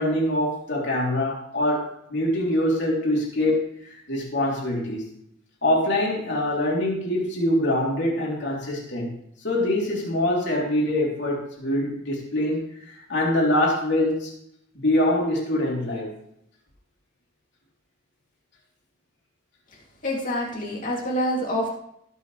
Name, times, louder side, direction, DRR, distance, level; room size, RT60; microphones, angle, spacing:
voice 1, 0.0-3.6 4.1-5.0 5.6-9.1 9.4-12.6 12.9-14.3 14.8-16.1, left 1 dB, 55° left, -3 dB, 3.5 m, -24 dB
voice 2, 20.0-21.7, equal, 40° left, -3 dB, 3.0 m, -26 dB
19.5 x 6.7 x 3.4 m, 0.75 s
head